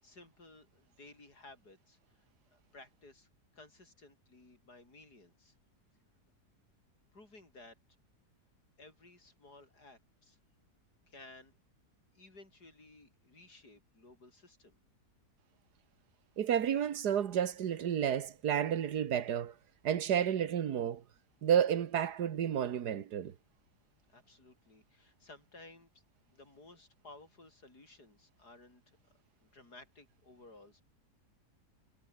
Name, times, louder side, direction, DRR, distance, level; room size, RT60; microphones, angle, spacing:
voice 1, 0.0-5.5 7.1-7.8 8.8-10.4 11.1-11.5 12.1-14.8 24.1-25.9 26.3-29.0 29.4-30.8, left 2 dB, 80° left, 6.6 m, -57 dB
voice 2, 16.4-19.5 19.8-21.0 21.4-23.3, right 9 dB, 85° right, 1.8 m, -31 dB
omnidirectional pair, 1.7 m